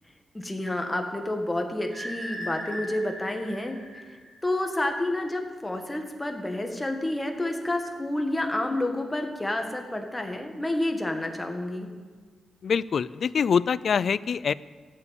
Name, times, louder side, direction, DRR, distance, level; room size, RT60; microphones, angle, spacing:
voice 1, 0.3-3.7 4.1-11.9, left 1 dB, 15° left, 3 dB, 1.6 m, -29 dB
sound 1, 1.9-4.7, equal, 40° right, 3.9 m, -39 dB
voice 2, 12.6-14.5, left 6 dB, 60° left, 19 dB, 0.4 m, -24 dB
13.5 x 7.5 x 8.4 m, 1.4 s
cardioid pair, 95°, 0 cm